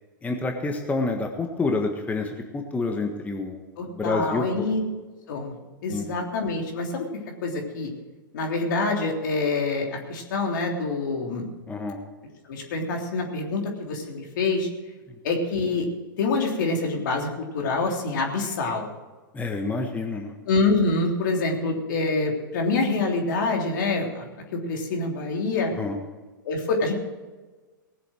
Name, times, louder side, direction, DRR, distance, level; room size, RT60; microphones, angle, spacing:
voice 1, 0.2-3.6 3.8-4.7 5.9-6.1 11.7-12.0 19.3-20.3 25.8-26.0, left 3 dB, 15° left, 3 dB, 1.5 m, -28 dB
voice 2, 3.8-4.8 5.3-5.5 5.8-7.0 7.4-7.9 8.3-11.5 12.5-14.7 15.2-15.8 16.2-17.3 17.5-18.9 20.5-24.2 24.5-25.7 26.4-26.9, left 3 dB, 65° left, 1 dB, 3.4 m, -26 dB
19.0 x 7.7 x 6.4 m, 1.3 s
hypercardioid pair, 110°, 11 cm